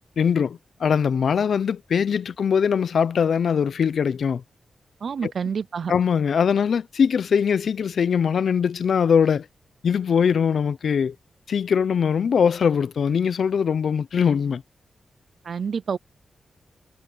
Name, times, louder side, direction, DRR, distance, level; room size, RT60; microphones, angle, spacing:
voice 1, 0.2-4.4 5.2-5.3 5.9-9.5 9.8-11.1 11.5-14.6, left 7 dB, 70° left, 0.6 m, -21 dB
voice 2, 5.0-5.9 15.4-16.0, right 6 dB, 60° right, 0.4 m, -28 dB
wide cardioid pair, 130°, 0 cm